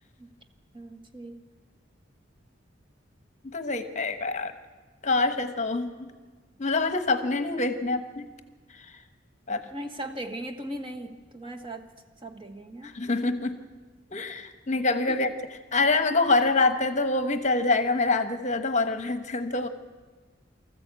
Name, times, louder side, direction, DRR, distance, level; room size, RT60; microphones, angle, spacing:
voice 1, 0.7-1.4 9.7-11.9 12.2-12.9 15.1-15.2, right 1 dB, 25° right, 5 dB, 1.4 m, -38 dB
voice 2, 3.4-4.5 5.0-6.1 6.6-8.3 8.8-8.9 9.5-9.6 12.8-13.6 14.1-15.3 15.7-19.7, left 3 dB, 40° left, 9 dB, 1.1 m, -25 dB
24.0 x 14.0 x 8.2 m, 1.4 s
head